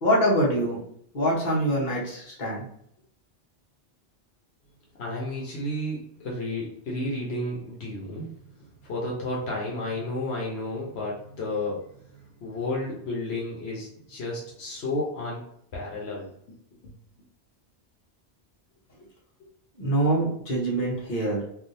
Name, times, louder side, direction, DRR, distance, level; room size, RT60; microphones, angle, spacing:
voice 1, 0.0-0.8 1.1-2.6 19.8-21.4, right 1 dB, 45° left, -4 dB, 1.2 m, -24 dB
voice 2, 5.0-8.5 8.8-15.4 15.7-16.3 16.8-16.9, left 1 dB, 70° left, -3 dB, 1.0 m, -32 dB
3.4 x 2.6 x 2.6 m, 0.68 s
omnidirectional pair, 1.1 m